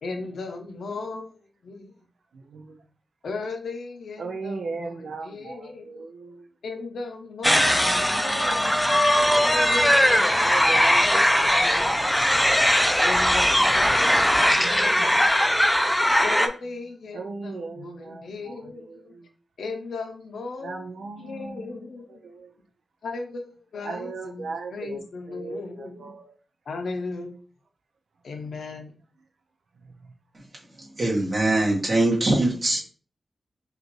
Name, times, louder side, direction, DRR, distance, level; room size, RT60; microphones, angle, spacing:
voice 1, 0.0-1.9 3.2-6.0 6.6-8.9 9.4-11.2 11.5-12.0 13.0-15.3 16.2-19.1 19.6-20.9 21.2-22.2 23.0-26.2 26.7-27.4 28.2-29.0, left 3 dB, 90° left, 5 dB, 0.6 m, -36 dB
voice 2, 2.3-2.8 4.2-6.5 7.6-9.5 10.4-12.6 14.5-15.7 17.1-19.3 20.6-21.7 22.1-22.6 23.8-26.4, right 4 dB, 90° right, 3 dB, 0.4 m, -38 dB
sound 1, 7.4-16.5, equal, 5° left, 0.4 m, -20 dB
voice 3, 31.0-32.8, right 2 dB, 45° right, -3 dB, 1.5 m, -22 dB
5.1 x 2.5 x 3.0 m, 0.39 s
wide cardioid pair, 125°, 0 cm